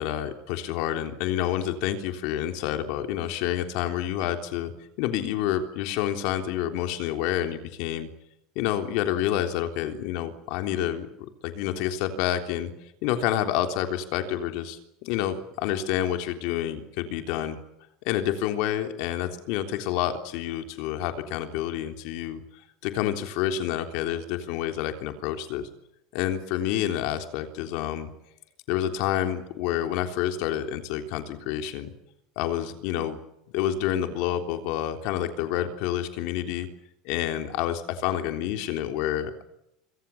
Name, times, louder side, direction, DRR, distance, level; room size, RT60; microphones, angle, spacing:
voice 1, 0.0-4.7 5.0-8.1 8.6-11.1 11.4-12.7 13.0-17.6 18.1-22.4 22.8-25.7 26.1-28.1 28.7-31.9 32.4-33.2 33.5-36.7 37.1-39.4, left 11 dB, 55° left, 6 dB, 3.5 m, -28 dB
27.0 x 25.5 x 7.2 m, 0.82 s
cardioid pair, 165°, 0 cm